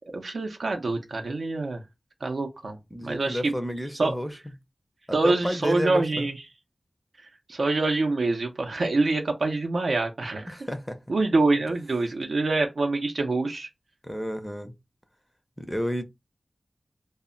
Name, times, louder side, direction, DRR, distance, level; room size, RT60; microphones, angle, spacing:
voice 1, 0.1-1.8 2.2-2.8 3.0-3.5 4.0-4.1 5.1-6.3 7.5-10.6 11.1-13.7, right 3 dB, 75° right, 0.5 m, -25 dB
voice 2, 2.9-4.4 5.1-6.3 10.5-11.0 14.0-14.7 15.6-16.0, equal, 5° left, 0.4 m, -31 dB
2.1 x 2.0 x 3.6 m
wide cardioid pair, 90°, 0 cm